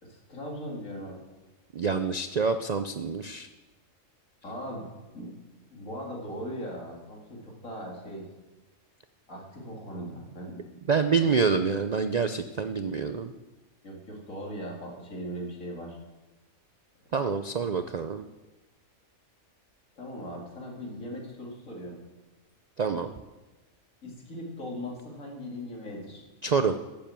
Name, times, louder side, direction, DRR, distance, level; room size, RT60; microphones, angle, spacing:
voice 1, 0.0-1.2 4.4-5.3 5.7-8.3 9.3-10.6 11.1-11.4 13.8-16.0 20.0-22.0 24.0-26.2, equal, 70° left, -1 dB, 3.1 m, -39 dB
voice 2, 1.7-3.5 10.9-13.3 17.1-18.2 22.8-23.1 26.4-26.8, right 5 dB, 65° right, 9 dB, 0.4 m, -27 dB
14.0 x 7.7 x 7.5 m, 1.2 s
omnidirectional pair, 1.4 m